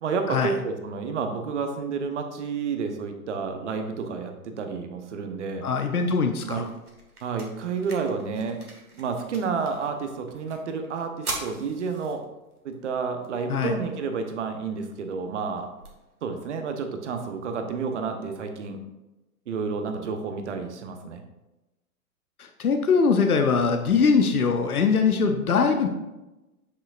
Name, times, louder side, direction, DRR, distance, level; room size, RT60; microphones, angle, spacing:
voice 1, 0.0-5.7 6.5-6.7 7.2-8.6 8.9-12.2 12.6-15.7 16.2-18.8 19.5-21.2, right 5 dB, 50° right, 6 dB, 1.0 m, -30 dB
sound 1, 5.5-17.5, right 2 dB, 80° right, 1.6 m, -44 dB
voice 2, 5.6-6.7 13.5-13.8 22.4-25.9, left 5 dB, 75° left, 5 dB, 0.8 m, -22 dB
7.9 x 6.3 x 2.5 m, 1.0 s
figure-of-eight pair, 110°, 44 cm